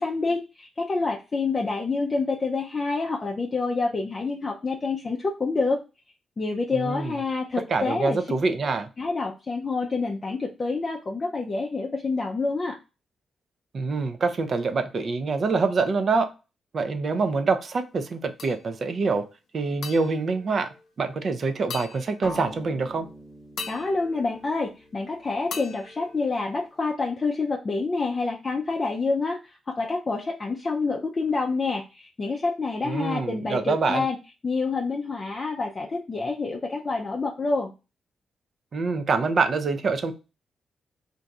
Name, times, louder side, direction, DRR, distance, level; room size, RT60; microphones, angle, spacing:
voice 1, 0.0-5.8 6.4-8.2 9.0-12.8 23.7-34.2 34.4-37.7, left 3 dB, 35° left, 0 dB, 0.4 m, -27 dB
voice 2, 6.7-7.1 7.7-8.9 13.7-16.3 16.7-19.3 19.5-20.7 21.0-23.1 32.8-34.1 38.7-40.1, right 4 dB, 50° right, 8 dB, 0.5 m, -25 dB
sound 1, 18.4-19.0 19.8-21.2 21.7-22.7 23.6-25.0 25.5-26.9, left 5 dB, 80° left, 0.6 m, -41 dB
sound 2, 22.2-26.2, equal, ahead, 0.8 m, -43 dB
2.6 x 2.3 x 4.0 m, 0.30 s
cardioid pair, 115°, 0 cm